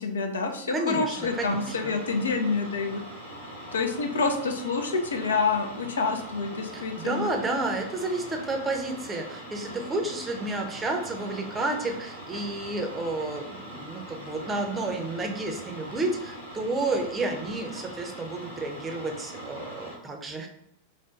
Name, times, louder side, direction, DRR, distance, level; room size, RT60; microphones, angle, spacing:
voice 1, 0.0-3.0 3.7-7.3, left 4 dB, 70° left, 5 dB, 0.4 m, -27 dB
voice 2, 0.7-1.9 6.7-20.5, right 2 dB, 15° right, 3 dB, 0.6 m, -31 dB
sound 1, 1.1-20.0, equal, 85° left, 1.2 m, -42 dB
4.4 x 2.2 x 2.4 m, 0.80 s
figure-of-eight pair, 90°, 0 cm